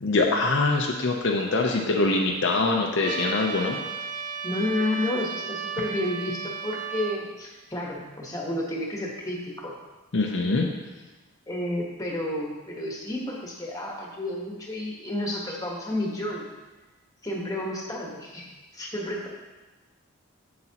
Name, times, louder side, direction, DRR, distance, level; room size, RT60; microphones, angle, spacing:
voice 1, 0.0-3.8 10.1-10.7, left 3 dB, 55° left, 0 dB, 0.6 m, -23 dB
Trumpet, 3.0-7.2, right 5 dB, 35° right, 0.3 m, -34 dB
voice 2, 4.4-9.7 11.5-16.5 17.2-18.5 18.7-19.3, left 1 dB, 15° left, -2 dB, 1.2 m, -31 dB
8.0 x 7.6 x 2.9 m, 1.2 s
head